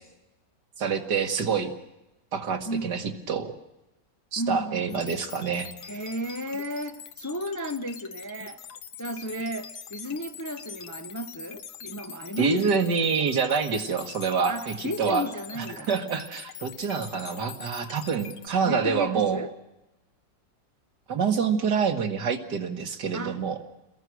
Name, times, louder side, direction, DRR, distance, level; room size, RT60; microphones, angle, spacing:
voice 1, 0.8-1.7 2.3-3.5 4.3-5.7 12.4-15.3 15.5-19.4 21.1-23.6, right 6 dB, 70° right, 2.3 m, -26 dB
voice 2, 4.4-5.0 5.8-8.6 9.0-12.7 13.0-13.1 14.4-15.9 18.6-19.5 23.1-23.4, equal, 15° left, 0.7 m, -34 dB
sound 1, 4.9-18.5, left 7 dB, 65° left, 1.7 m, -43 dB
29.5 x 21.5 x 6.3 m
omnidirectional pair, 1.9 m